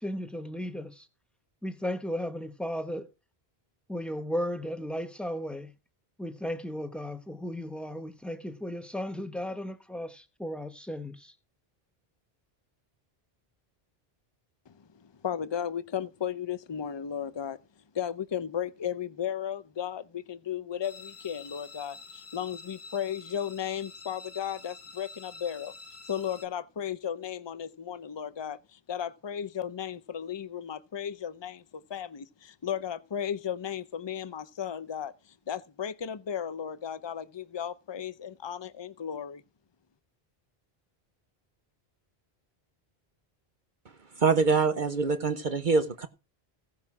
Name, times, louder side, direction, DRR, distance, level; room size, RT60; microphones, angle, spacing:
voice 1, 0.0-1.1 1.6-3.1 3.9-5.7 6.2-11.3, equal, ahead, 1.1 m, -35 dB
voice 2, 14.7-17.6 17.9-25.7 26.1-39.4, left 9 dB, 30° left, 0.6 m, -35 dB
sound 1, 20.8-26.5, left 4 dB, 90° left, 1.4 m, -48 dB
voice 3, 44.2-46.1, right 4 dB, 50° right, 1.0 m, -24 dB
17.0 x 5.7 x 6.1 m
omnidirectional pair, 1.0 m